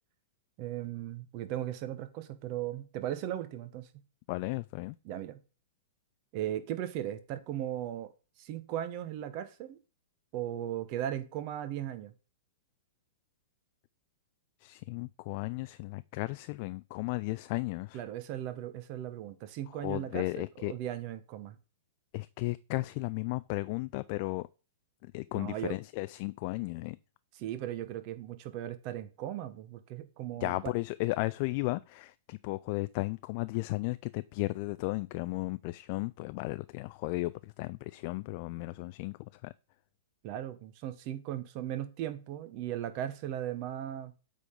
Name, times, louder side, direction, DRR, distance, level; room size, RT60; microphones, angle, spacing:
voice 1, 0.6-3.9 5.0-5.4 6.3-8.1 8.4-9.8 10.3-12.1 17.9-21.6 25.3-25.8 27.3-30.7 40.2-44.1, right 12 dB, 45° right, 1.2 m, -37 dB
voice 2, 4.3-4.9 14.6-18.0 19.8-20.7 22.1-24.5 25.1-27.0 30.4-39.5, left 22 dB, 45° left, 0.3 m, -35 dB
8.2 x 3.9 x 5.1 m
hypercardioid pair, 110°, 0 cm